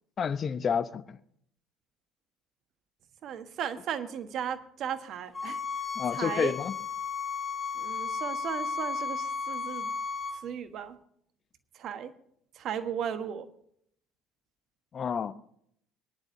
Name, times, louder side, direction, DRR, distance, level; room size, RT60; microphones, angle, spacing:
voice 1, 0.2-1.2 6.0-6.7 14.9-15.3, left 7 dB, 40° left, 0.8 m, -30 dB
voice 2, 3.2-5.6 6.1-6.5 7.7-9.9 10.4-11.0 11.8-12.1 12.6-13.5, right 8 dB, 55° right, 1.3 m, -35 dB
sound 1, 5.3-10.4, left 5 dB, 20° left, 3.7 m, -34 dB
23.0 x 10.5 x 2.7 m
hypercardioid pair, 60°, 0 cm